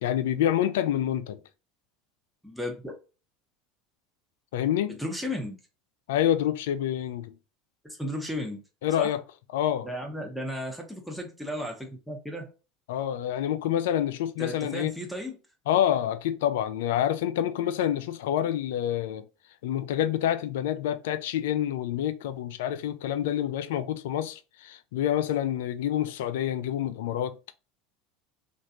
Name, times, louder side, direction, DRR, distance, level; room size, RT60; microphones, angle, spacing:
voice 1, 0.0-1.4 4.5-5.0 6.1-7.3 8.8-9.2 9.5-9.9 12.9-14.9 15.7-19.2 19.6-27.4, left 11 dB, 75° left, 0.3 m, -27 dB
voice 2, 2.4-2.9 4.9-5.6 7.8-8.6 9.0-9.1 9.8-12.5 14.4-15.4, equal, ahead, 0.9 m, -34 dB
3.1 x 2.5 x 2.8 m
hypercardioid pair, 80°, 0 cm